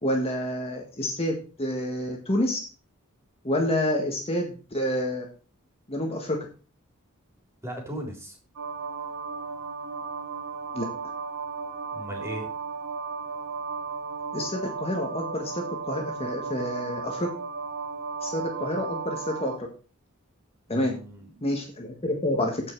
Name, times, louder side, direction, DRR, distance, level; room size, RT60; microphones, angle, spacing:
voice 1, 0.0-2.6 3.4-5.2 5.9-6.4 10.7-10.8 14.3-17.3 18.2-19.7 20.7-20.9 21.4-22.6, left 1 dB, 30° left, 1 dB, 1.7 m, -28 dB
voice 2, 7.6-8.4 11.9-12.5 20.7-21.4, equal, 15° right, 0 dB, 3.8 m, -37 dB
sound 1, 8.6-19.6, right 5 dB, 80° right, 2.2 m, -35 dB
15.0 x 5.8 x 4.7 m, 0.37 s
head